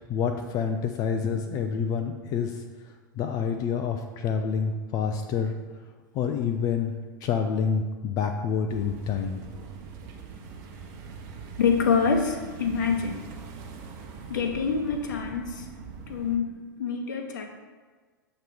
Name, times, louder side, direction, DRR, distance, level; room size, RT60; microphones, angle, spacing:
voice 1, 0.0-5.5 6.1-6.9 7.2-9.4, left 6 dB, 35° left, 6 dB, 0.4 m, -28 dB
sound 1, 8.7-16.4, right 5 dB, 40° right, 1.0 m, -42 dB
voice 2, 11.6-13.3 14.3-15.7 16.1-17.4, left 5 dB, 60° left, 4 dB, 0.9 m, -26 dB
7.7 x 3.0 x 5.1 m, 1.5 s
figure-of-eight pair, 90°, 11 cm